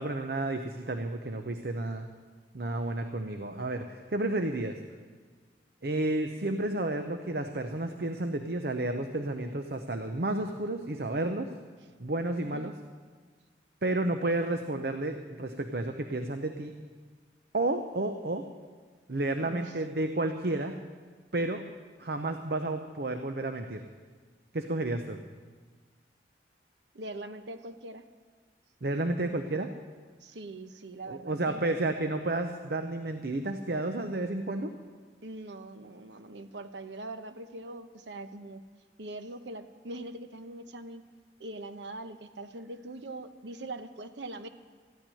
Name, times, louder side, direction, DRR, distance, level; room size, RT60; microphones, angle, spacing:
voice 1, 0.0-2.1 2.5-4.8 5.8-11.5 12.0-12.7 13.8-16.7 17.5-18.4 19.1-20.8 21.3-21.6 22.0-23.8 24.5-25.2 28.8-29.7 31.1-34.7, right 2 dB, 60° right, 6 dB, 0.8 m, -31 dB
voice 2, 12.4-12.7 19.4-19.7 26.9-28.1 30.2-31.6 35.2-38.6 39.0-41.0 41.4-44.5, right 2 dB, 85° right, 9 dB, 1.0 m, -42 dB
14.5 x 9.1 x 9.9 m, 1.5 s
head